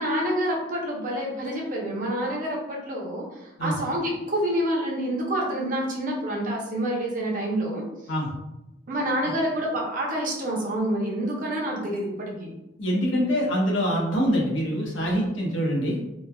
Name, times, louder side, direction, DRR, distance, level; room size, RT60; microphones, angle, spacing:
voice 1, 0.0-7.9 8.9-12.5, right 1 dB, 45° right, -2 dB, 0.6 m, -27 dB
voice 2, 12.8-16.0, equal, 85° left, -2 dB, 0.7 m, -24 dB
3.0 x 2.1 x 2.2 m, 0.94 s
head